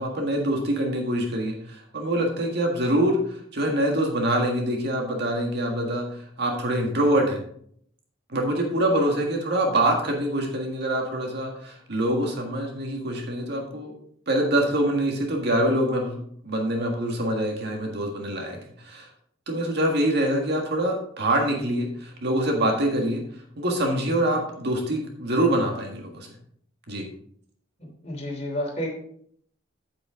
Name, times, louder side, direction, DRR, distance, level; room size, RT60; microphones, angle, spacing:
voice 1, 0.0-7.4 8.3-13.9 14.3-19.1 19.5-23.2 23.6-26.3 26.9-27.0, right 1 dB, 60° right, 2 dB, 1.7 m, -25 dB
voice 2, 28.0-28.9, equal, 35° left, -1 dB, 3.1 m, -30 dB
8.7 x 8.6 x 3.7 m, 0.64 s
head